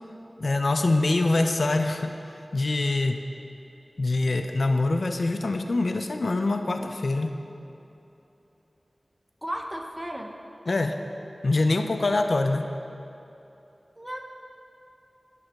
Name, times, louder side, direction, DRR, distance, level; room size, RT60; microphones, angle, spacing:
voice 1, 0.4-2.2 2.5-3.3 4.0-7.4 10.7-11.0 11.4-12.7, left 2 dB, 70° left, 6 dB, 0.3 m, -24 dB
voice 2, 9.4-10.3 14.0-14.2, equal, 15° right, 2 dB, 0.6 m, -34 dB
8.6 x 3.3 x 6.2 m, 3.0 s
wide cardioid pair, 45°, 0 cm